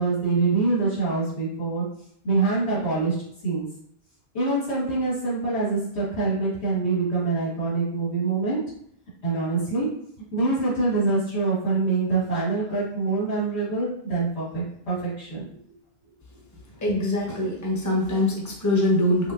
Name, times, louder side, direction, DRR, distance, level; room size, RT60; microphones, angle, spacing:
voice 1, 0.0-1.8 2.2-3.2 3.4-3.7 4.3-8.6 9.2-9.9 10.3-15.5, right 3 dB, 80° left, -8 dB, 2.0 m, -25 dB
voice 2, 16.8-19.3, left 1 dB, 20° left, -2 dB, 0.7 m, -23 dB
5.6 x 2.0 x 2.5 m, 0.69 s
omnidirectional pair, 1.1 m